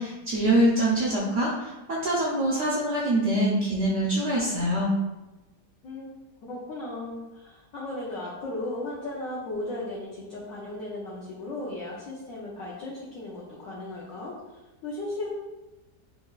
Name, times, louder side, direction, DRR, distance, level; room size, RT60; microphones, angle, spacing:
voice 1, 0.0-4.9, right 1 dB, 70° right, -4 dB, 0.7 m, -24 dB
voice 2, 5.8-6.2 6.4-15.3, left 2 dB, 65° left, -5 dB, 0.9 m, -36 dB
4.5 x 2.4 x 2.3 m, 1.1 s
omnidirectional pair, 1.8 m